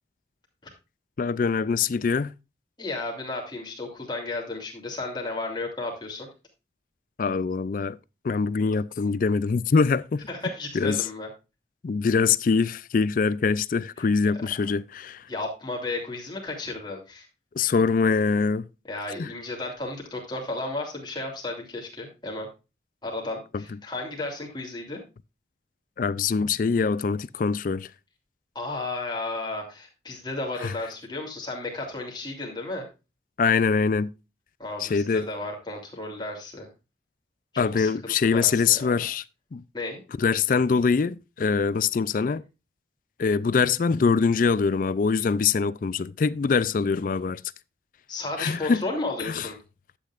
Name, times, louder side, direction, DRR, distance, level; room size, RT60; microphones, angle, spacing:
voice 1, 1.2-2.3 7.2-8.0 8.2-10.2 10.7-11.0 11.8-15.2 17.6-18.6 19.2-19.3 26.0-27.9 30.6-30.7 33.4-34.1 34.8-35.3 37.6-39.2 39.5-39.6 40.2-42.4 43.2-47.4 48.4-48.8 49.3-49.5, left 5 dB, 50° left, 0.4 m, -23 dB
voice 2, 2.8-6.3 10.3-11.3 14.0-14.1 15.3-17.3 18.9-22.5 23.0-25.0 28.5-32.8 34.6-36.7 37.6-39.1 39.7-40.0 48.1-49.5, left 2 dB, 25° left, 3.0 m, -33 dB
11.5 x 8.6 x 2.5 m
head